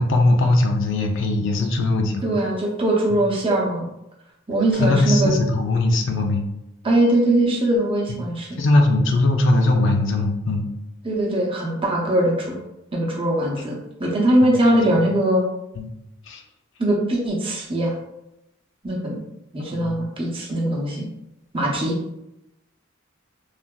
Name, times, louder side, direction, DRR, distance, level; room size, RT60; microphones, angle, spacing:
voice 1, 0.0-2.3 4.8-6.4 8.6-10.7 14.4-14.5 15.8-15.9 16.3-16.4 19.7-20.0, left 2 dB, 65° left, 3 dB, 0.4 m, -20 dB
voice 2, 2.2-3.9 4.5-5.3 6.8-8.6 11.0-12.6 12.9-15.4 16.8-18.0 18.8-19.2 19.5-21.1 21.5-22.0, right 1 dB, 25° right, -3 dB, 0.7 m, -21 dB
3.2 x 2.6 x 2.2 m, 0.86 s
head